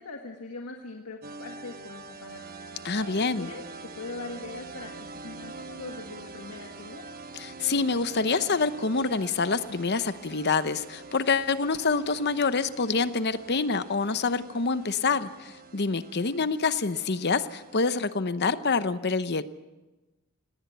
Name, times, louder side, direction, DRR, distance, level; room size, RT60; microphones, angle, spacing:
voice 1, 0.0-2.4 3.4-3.6 3.9-7.0, left 3 dB, 85° left, 2 dB, 1.7 m, -41 dB
sound 1, 1.2-18.1, right 4 dB, 40° right, 1.2 m, -45 dB
voice 2, 2.8-3.5 7.3-19.4, left 4 dB, 50° left, 13 dB, 0.8 m, -26 dB
19.0 x 18.5 x 8.1 m, 1.1 s
head